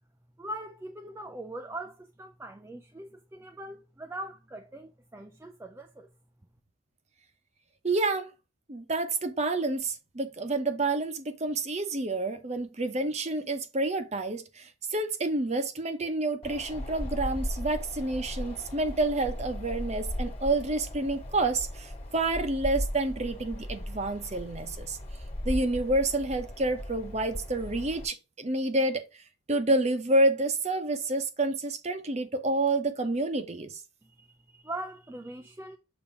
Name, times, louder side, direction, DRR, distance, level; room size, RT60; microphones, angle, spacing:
voice 1, 0.4-6.1 34.0-35.8, right 1 dB, 10° right, 0.4 m, -41 dB
voice 2, 7.8-8.3 8.7-25.0 25.4-29.0 29.5-33.7, right 2 dB, 30° right, 0.8 m, -29 dB
Wind, 16.4-28.1, left 1 dB, 30° left, 1.6 m, -37 dB
7.1 x 2.8 x 4.8 m
head